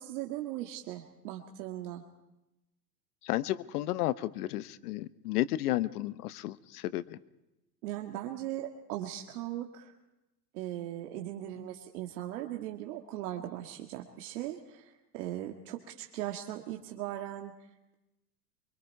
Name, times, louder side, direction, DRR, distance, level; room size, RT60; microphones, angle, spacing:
voice 1, 0.0-2.0 7.8-9.9 10.5-17.5, right 13 dB, 60° right, 2 dB, 1.9 m, -39 dB
voice 2, 3.2-7.2, left 15 dB, 65° left, 16 dB, 1.0 m, -32 dB
25.5 x 24.0 x 4.6 m, 0.95 s
supercardioid pair, 135°, 50 cm